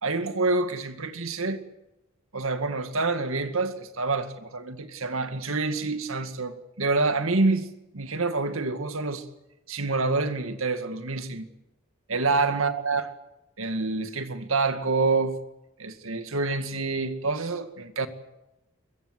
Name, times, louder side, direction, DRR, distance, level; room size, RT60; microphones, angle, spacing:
voice 1, 0.0-1.6 2.3-7.7 7.9-9.2 9.7-11.5 12.1-13.1 13.6-15.4 15.8-18.1, right 3 dB, 85° right, 2.1 m, -27 dB
23.0 x 21.0 x 8.0 m
head